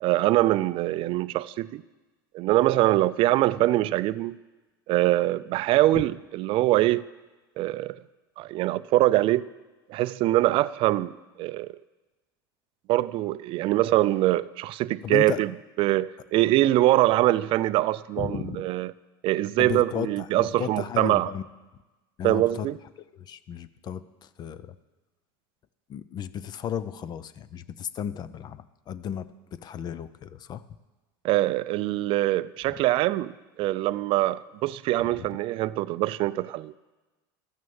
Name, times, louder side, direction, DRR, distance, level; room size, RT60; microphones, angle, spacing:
voice 1, 0.0-1.8 2.3-4.4 4.9-7.0 7.6-8.0 8.4-9.4 9.9-11.7 12.9-15.5 15.8-18.9 19.2-21.3 22.2-22.8 31.2-36.7, right 16 dB, 45° right, 0.4 m, -23 dB
voice 2, 15.0-15.4 18.2-18.6 19.6-21.5 22.2-22.7 23.1-24.8 25.9-30.6 35.2-35.3, left 9 dB, 35° left, 0.5 m, -34 dB
13.5 x 6.3 x 7.1 m
supercardioid pair, 110°, 12 cm